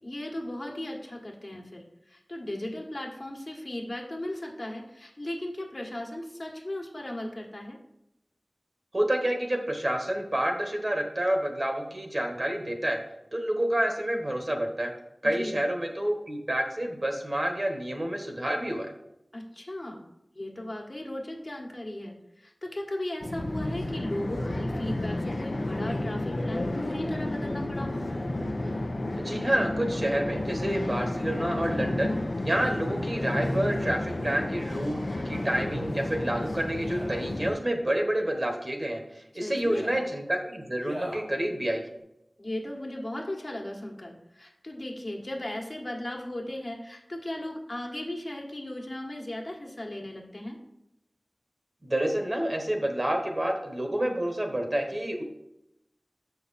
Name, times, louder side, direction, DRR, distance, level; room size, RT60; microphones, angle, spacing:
voice 1, 0.0-7.8 15.2-15.6 19.3-20.0 20.3-28.0 39.4-39.9 42.4-50.6, left 1 dB, 50° left, 0 dB, 1.4 m, -36 dB
voice 2, 8.9-13.0 13.3-14.9 15.2-18.9 29.2-32.2 32.4-41.8 51.8-55.2, right 1 dB, 45° right, 3 dB, 1.3 m, -29 dB
sound 1, 23.2-37.5, left 1 dB, 70° left, 0.8 m, -31 dB
Male speech man speaking, 33.7-34.1 35.2-35.6 36.7-37.3 38.2-38.6 39.6-40.1 40.8-41.3 42.0-42.1, equal, 85° right, 1.9 m, -42 dB
6.9 x 5.8 x 4.2 m, 0.86 s
wide cardioid pair, 55°, 0 cm